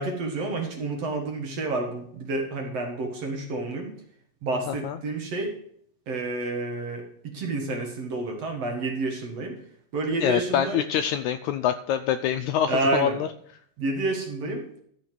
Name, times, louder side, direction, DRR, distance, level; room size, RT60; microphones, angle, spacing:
voice 1, 0.0-3.9 4.4-5.5 6.1-9.6 9.9-10.8 12.7-13.2 13.8-14.7, right 2 dB, 55° right, 2 dB, 2.5 m, -29 dB
voice 2, 4.7-5.0 10.2-13.3, left 10 dB, 85° left, 9 dB, 1.6 m, -25 dB
14.0 x 5.8 x 6.0 m, 0.65 s
omnidirectional pair, 3.9 m